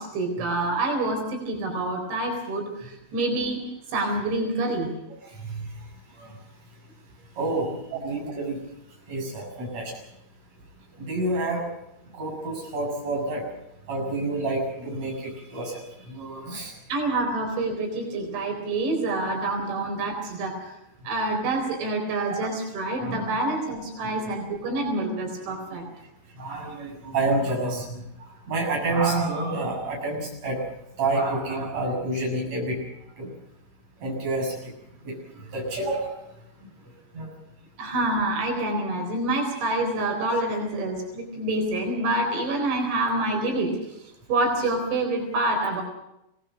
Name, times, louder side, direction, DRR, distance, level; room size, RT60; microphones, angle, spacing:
voice 1, 0.0-3.7 3.9-4.9 16.9-20.7 21.0-25.8 37.8-45.8, right 2 dB, 85° right, 3 dB, 6.4 m, -27 dB
voice 2, 5.3-5.7 6.2-6.3 7.4-8.6 9.1-9.9 11.0-11.6 12.1-13.4 13.9-16.7 22.3-22.5 23.0-23.2 24.0-24.4 26.4-30.6 31.0-32.8 33.2-33.3 34.0-34.7 35.0-36.2 37.1-37.3, right 2 dB, 35° right, -1 dB, 8.3 m, -29 dB
25.5 x 18.5 x 6.3 m, 0.85 s
omnidirectional pair, 5.1 m